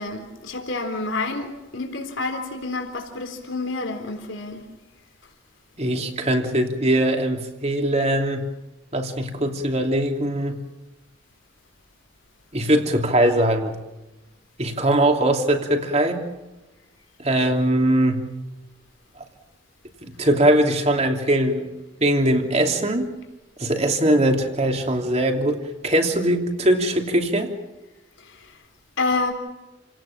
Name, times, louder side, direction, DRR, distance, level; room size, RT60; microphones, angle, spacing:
voice 1, 0.0-4.6 28.2-28.6 29.0-29.3, left 3 dB, 85° left, 3 dB, 3.9 m, -28 dB
voice 2, 5.8-8.5 8.9-10.6 12.5-13.8 14.6-16.2 17.2-18.3 20.0-21.7 22.0-23.1 23.6-27.5, right 1 dB, 35° right, 4 dB, 3.0 m, -21 dB
30.0 x 18.0 x 7.3 m, 1.0 s
head